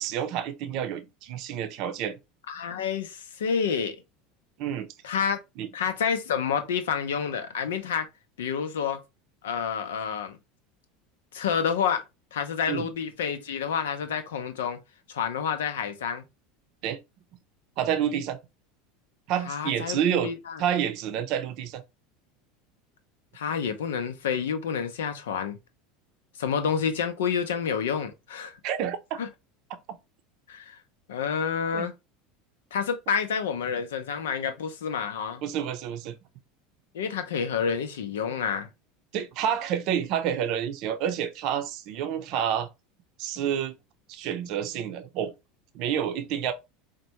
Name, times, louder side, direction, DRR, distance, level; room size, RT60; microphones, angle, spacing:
voice 1, 0.0-2.2 4.6-4.9 5.6-5.7 12.7-12.9 16.8-17.0 17.8-18.4 19.3-20.3 20.6-21.8 28.6-29.0 31.7-31.9 35.4-36.1 39.1-42.7 43.2-43.7 44.1-45.3 45.7-46.5, right 9 dB, 55° right, 0.6 m, -28 dB
voice 2, 2.5-4.0 5.0-5.4 5.7-8.1 8.4-9.0 9.4-10.4 11.3-12.0 12.3-14.8 15.1-16.2 19.5-20.6 23.3-25.6 26.4-28.5 29.2-29.3 30.5-30.8 31.1-31.9 32.7-35.4 36.9-38.7, left 7 dB, 75° left, 0.6 m, -29 dB
4.2 x 2.2 x 2.9 m
hypercardioid pair, 80°, 0 cm